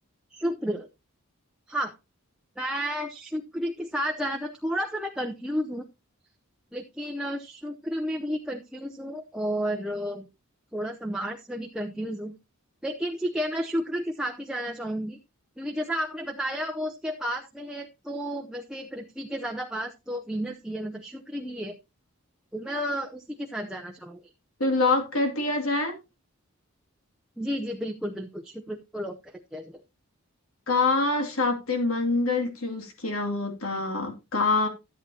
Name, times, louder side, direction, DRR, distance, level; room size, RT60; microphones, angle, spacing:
voice 1, 0.3-0.9 1.7-2.0 2.6-5.8 6.7-10.3 10.7-12.3 12.8-15.2 15.6-21.8 22.5-24.2 27.4-29.8, equal, 5° right, 0.7 m, -32 dB
voice 2, 24.6-26.0 30.7-34.7, left 3 dB, 75° left, 2.5 m, -25 dB
13.5 x 8.4 x 2.8 m
head